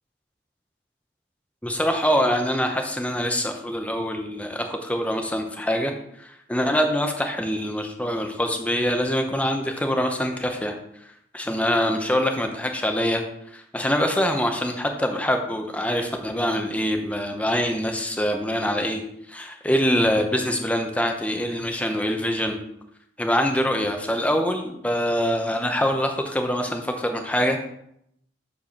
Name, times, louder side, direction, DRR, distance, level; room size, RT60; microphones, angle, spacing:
voice 1, 1.6-5.9 6.2-10.7 11.3-13.2 13.5-19.0 19.3-22.6 23.2-27.7, equal, 5° left, 4 dB, 0.8 m, -24 dB
6.9 x 5.1 x 5.4 m, 0.74 s
head